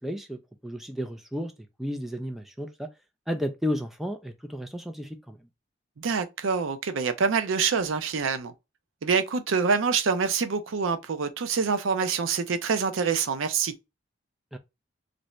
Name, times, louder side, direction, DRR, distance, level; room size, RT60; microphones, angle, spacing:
voice 1, 0.0-1.5 1.8-2.9 3.3-5.4 14.5-14.6, equal, ahead, 0.3 m, -33 dB
voice 2, 6.0-8.5 9.0-13.7, right 5 dB, 85° right, 0.5 m, -26 dB
3.2 x 2.6 x 3.0 m
head